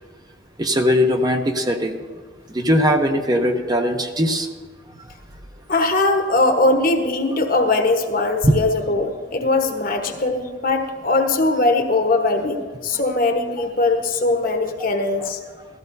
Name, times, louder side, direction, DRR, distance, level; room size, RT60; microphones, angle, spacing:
voice 1, 0.6-2.0 2.5-4.5 8.4-8.6 15.2-15.3, equal, 25° right, 5 dB, 0.7 m, -19 dB
voice 2, 5.7-15.4, left 2 dB, 50° left, 4 dB, 1.2 m, -20 dB
16.0 x 13.5 x 2.7 m, 1.5 s
head